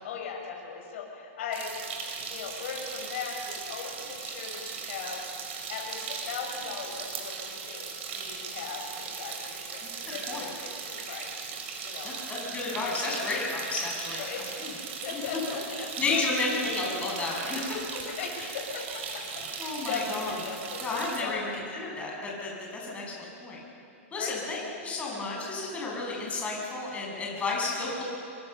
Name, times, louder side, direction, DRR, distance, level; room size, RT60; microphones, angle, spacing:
voice 1, 0.0-1.8 2.3-5.2 5.7-9.8 10.1-11.4 11.8-12.1 14.2-16.6 18.0-21.4 24.2-24.4, left 6 dB, 60° left, -1 dB, 6.9 m, -38 dB
sound 1, 1.5-21.2, right 5 dB, 60° right, 5.5 m, -38 dB
voice 2, 12.0-14.2 15.1-15.2 16.0-18.0 19.6-20.3 20.8-23.6 24.1-28.0, left 3 dB, 15° left, -2 dB, 7.5 m, -32 dB
25.5 x 23.5 x 7.0 m, 2.7 s
hypercardioid pair, 145°, 8 cm